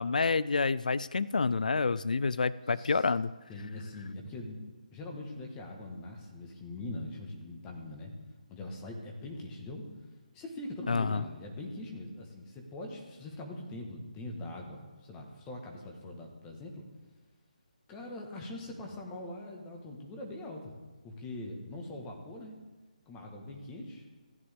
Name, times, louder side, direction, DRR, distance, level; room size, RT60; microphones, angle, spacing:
voice 1, 0.0-3.3 10.9-11.2, left 4 dB, 70° left, 18 dB, 0.4 m, -28 dB
voice 2, 3.5-4.6 4.9-8.1 8.5-9.8 10.3-16.9 17.9-22.6 23.1-24.1, left 2 dB, 15° left, 1 dB, 1.6 m, -42 dB
14.5 x 9.6 x 3.6 m, 1.3 s
figure-of-eight pair, 155°, 4 cm